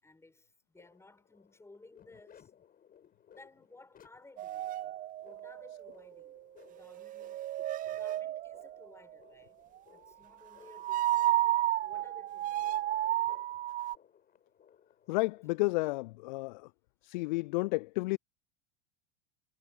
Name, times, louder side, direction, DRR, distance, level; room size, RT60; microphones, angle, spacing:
voice 1, 0.0-2.5 3.3-5.0 5.2-6.4 6.7-7.4 7.8-9.6 9.9-12.8, left 2 dB, 10° left, 7.7 m, -58 dB
sound 1, 0.8-15.9, left 9 dB, 30° left, 7.2 m, -62 dB
sound 2, 4.4-6.3 6.8-8.9 10.7-14.0, right 14 dB, 30° right, 0.6 m, -32 dB
voice 2, 15.1-16.6 17.1-18.2, left 24 dB, 55° left, 0.4 m, -31 dB
figure-of-eight pair, 85°, 29 cm